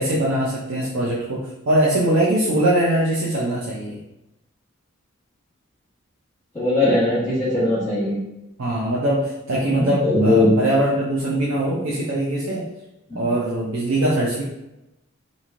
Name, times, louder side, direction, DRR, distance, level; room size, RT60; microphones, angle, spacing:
voice 1, 0.0-4.0 8.6-12.6 13.1-14.4, right 1 dB, 65° right, -5 dB, 0.5 m, -22 dB
voice 2, 6.5-8.2 9.7-10.5 13.1-13.3, left 2 dB, 10° left, -11 dB, 1.1 m, -20 dB
3.0 x 2.6 x 2.4 m, 0.94 s
head